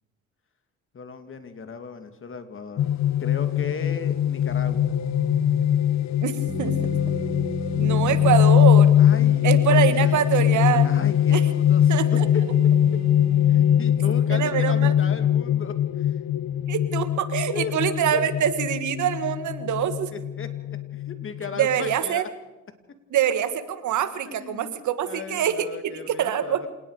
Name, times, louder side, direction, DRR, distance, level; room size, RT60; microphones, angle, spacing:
voice 1, 0.9-2.8 3.2-4.9 8.2-8.7 9.0-9.5 9.7-10.2 10.8-12.0 12.3-12.4 13.5-16.2 17.4-17.7 18.1-18.2 20.1-22.3 24.3-24.7 25.0-26.7, left 5 dB, 45° left, 8 dB, 2.6 m, -36 dB
sound 1, 2.8-21.9, left 10 dB, 65° left, 0.7 m, -21 dB
sound 2, 4.5-5.8 6.5-8.6 9.2-11.2 11.9-13.9, right 3 dB, 20° right, 1.7 m, -36 dB
voice 2, 6.2-6.8 7.8-8.9 9.4-10.9 11.3-11.4 11.9-12.3 14.3-14.9 16.7-20.1 21.6-22.2 23.1-26.6, right 9 dB, 75° right, 11 dB, 1.9 m, -24 dB
27.0 x 19.0 x 5.1 m, 1.0 s
cardioid pair, 90°, 30 cm